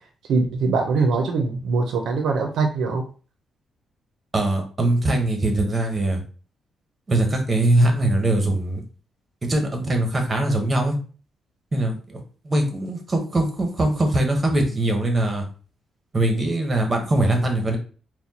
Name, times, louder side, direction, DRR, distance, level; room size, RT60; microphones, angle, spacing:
voice 1, 0.3-3.0, right 4 dB, 85° right, 3 dB, 0.6 m, -22 dB
voice 2, 4.3-6.2 7.1-8.8 9.4-11.0 11.7-15.4 16.1-17.8, right 1 dB, 25° right, 3 dB, 1.0 m, -22 dB
4.3 x 2.2 x 4.1 m, 0.38 s
cardioid pair, 145°, 0 cm